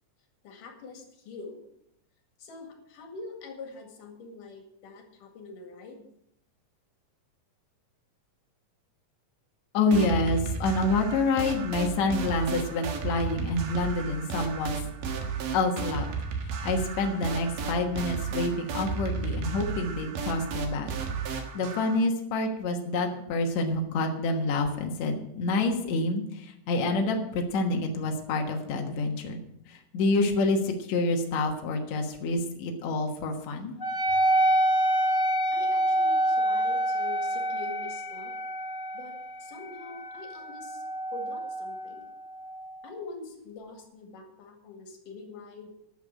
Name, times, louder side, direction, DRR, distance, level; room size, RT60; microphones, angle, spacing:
voice 1, 0.4-1.6 2.4-6.0 35.5-38.3 38.9-39.1 39.4-40.8 41.1-42.0 42.8-45.7, left 3 dB, 85° left, 4 dB, 3.6 m, -44 dB
voice 2, 9.7-14.8 15.5-16.1 16.4-20.9 21.5-29.4 29.7-33.7, left 2 dB, 65° left, 2 dB, 2.6 m, -27 dB
sound 1, 9.9-22.0, right 5 dB, 85° right, 3.2 m, -33 dB
Wind instrument woodwind instrument, 33.8-42.7, right 1 dB, 50° left, 0.6 m, -27 dB
12.5 x 6.8 x 8.8 m, 0.77 s
omnidirectional pair, 3.6 m